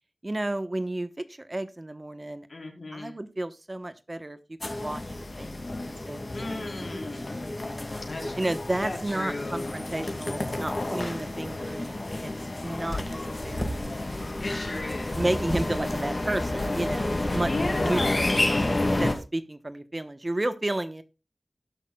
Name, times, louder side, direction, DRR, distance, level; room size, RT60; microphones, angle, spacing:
voice 1, 0.2-2.5 2.9-5.6 6.1-6.2 6.5-7.3 8.4-12.3 12.6-14.0 15.2-21.0, right 1 dB, 30° right, 11 dB, 1.0 m, -32 dB
voice 2, 2.5-3.1 6.3-7.3 8.1-8.3 8.7-9.9 14.3-15.1 17.4-18.2, left 2 dB, 75° left, 1 dB, 4.2 m, -35 dB
sound 1, 4.6-19.1, left 2 dB, 40° left, 2.4 m, -30 dB
sound 2, 12.6-19.2, equal, 25° left, 3.9 m, -38 dB
18.5 x 6.6 x 2.3 m, 0.29 s
wide cardioid pair, 80°, 0 cm